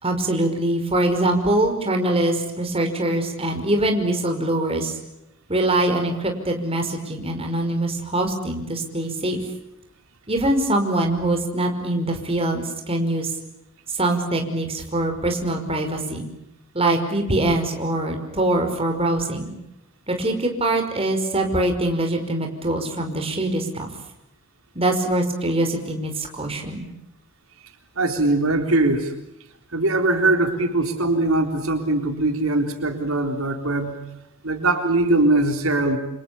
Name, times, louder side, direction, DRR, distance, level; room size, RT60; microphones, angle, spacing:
voice 1, 0.0-5.0 5.5-9.4 10.3-13.3 14.0-16.3 16.7-19.5 20.1-23.9 24.8-26.9, right 1 dB, 30° right, 4 dB, 5.4 m, -23 dB
voice 2, 28.0-29.1 29.7-34.0 34.4-36.0, right 2 dB, 85° right, 5 dB, 3.9 m, -21 dB
28.5 x 28.5 x 7.0 m, 0.86 s
head